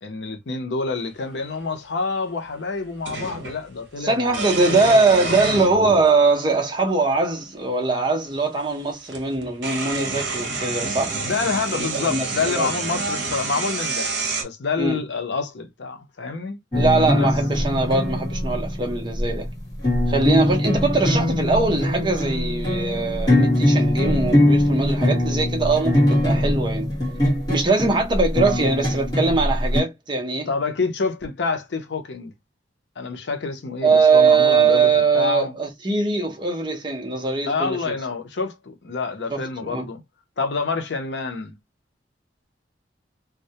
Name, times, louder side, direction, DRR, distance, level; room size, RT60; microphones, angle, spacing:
voice 1, 0.0-5.0 5.2-5.6 11.2-14.1 14.4-16.6 17.2-17.3 30.5-32.3 33.0-35.5 37.5-40.0 40.4-41.6, left 4 dB, 75° left, 0.6 m, -27 dB
sound 1, 1.4-1.5 3.1-3.6 4.3-6.1 7.1-7.2 8.6-8.7 9.1-14.4, right 4 dB, 75° right, 0.8 m, -28 dB
voice 2, 4.0-11.2 11.7-12.7 14.8-15.0 16.7-19.5 20.1-26.9 27.5-30.5 33.8-37.9 39.3-39.9, right 3 dB, 25° right, 0.6 m, -21 dB
sound 2, 16.7-29.8, left 1 dB, 20° left, 1.1 m, -21 dB
2.2 x 2.0 x 2.7 m
head